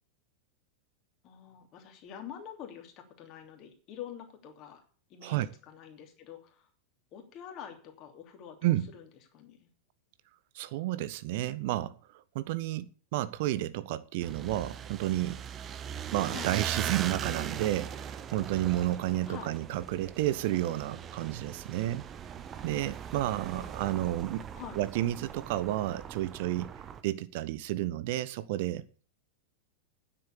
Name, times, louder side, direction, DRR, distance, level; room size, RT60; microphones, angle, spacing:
voice 1, 1.2-4.8 5.1-5.4 5.7-6.7 7.1-9.7 16.3-16.5 19.3-19.5 23.5-23.9 24.5-24.8, left 9 dB, 35° left, 3.0 m, -46 dB
voice 2, 10.5-15.4 16.1-22.1 22.6-24.5 24.8-26.7 27.0-28.8, right 14 dB, 50° right, 0.7 m, -31 dB
sound 1, 14.2-27.0, right 8 dB, 25° right, 0.9 m, -40 dB
9.7 x 7.7 x 8.3 m
figure-of-eight pair, 90°, 0 cm